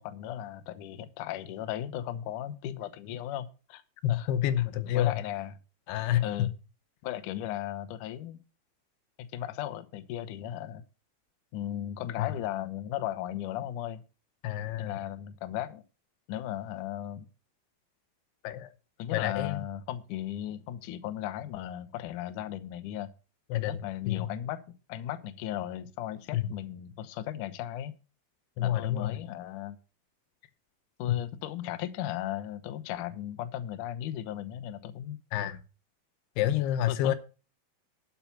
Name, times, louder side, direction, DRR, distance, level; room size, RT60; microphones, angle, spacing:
voice 1, 0.0-3.8 4.1-4.3 4.6-4.7 4.9-5.6 6.2-6.5 7.0-8.4 9.2-10.8 11.5-14.0 14.8-15.8 16.3-17.3 19.0-23.1 23.7-24.6 24.9-27.9 28.6-29.8 31.0-35.2 36.9-37.1, left 12 dB, 70° left, 2.1 m, -36 dB
voice 2, 4.0-5.2 5.9-6.5 12.2-12.3 14.4-15.0 18.4-18.7 19.1-19.6 23.5-23.8 24.1-24.3 26.3-26.5 28.6-29.1 31.1-31.2 35.3-35.6 36.4-37.1, left 12 dB, 85° left, 3.0 m, -28 dB
11.5 x 6.9 x 5.9 m
omnidirectional pair, 4.6 m